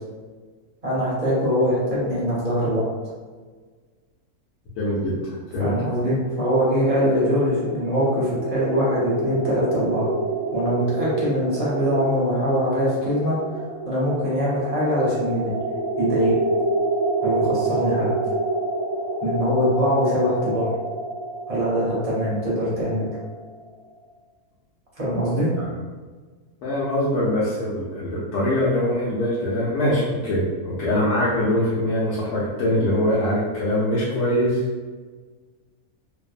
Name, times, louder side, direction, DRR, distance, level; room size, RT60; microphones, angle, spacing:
voice 1, 0.8-2.8 5.6-10.1 10.5-13.4 13.9-15.5 16.0-16.3 17.2-18.1 19.2-20.7 21.5-23.1 25.0-25.5, equal, 35° right, -8 dB, 0.7 m, -22 dB
voice 2, 4.8-5.7 25.6-25.7 26.6-34.6, left 1 dB, 75° left, -9 dB, 1.1 m, -23 dB
sound 1, 7.1-23.7, right 2 dB, 70° right, 0.9 m, -28 dB
2.9 x 2.0 x 2.4 m, 1.4 s
omnidirectional pair, 1.6 m